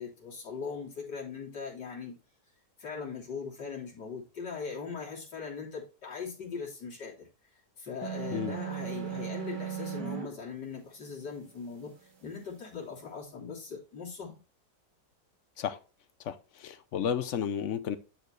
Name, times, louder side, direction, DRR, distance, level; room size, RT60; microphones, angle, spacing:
voice 1, 0.0-2.2 2.8-7.3 7.8-11.9 12.2-14.4, left 5 dB, 85° left, 3.8 m, -40 dB
sound 1, 8.0-10.3, right 9 dB, 80° right, 2.4 m, -36 dB
voice 2, 16.2-18.0, left 8 dB, 60° left, 0.9 m, -32 dB
11.5 x 4.7 x 3.2 m
omnidirectional pair, 1.8 m